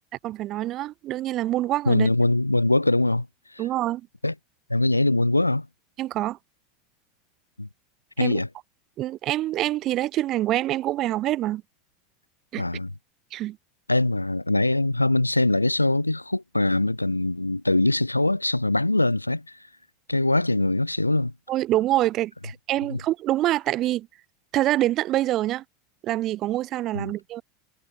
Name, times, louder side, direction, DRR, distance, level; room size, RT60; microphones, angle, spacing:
voice 1, 0.2-2.1 3.6-4.0 6.0-6.4 8.2-8.4 9.0-11.6 12.5-12.6 13.3-13.6 21.5-24.1 24.5-25.6 26.0-27.4, right 14 dB, 40° right, 2.1 m, -25 dB
voice 2, 1.9-3.3 3.5-3.6 4.2-4.3 4.7-5.7 7.6-7.7 8.2-8.5 12.6-12.9 13.9-19.6 20.1-21.3 22.9-23.0 26.9-27.1, left 2 dB, 85° left, 0.7 m, -22 dB
figure-of-eight pair, 80°, 0 cm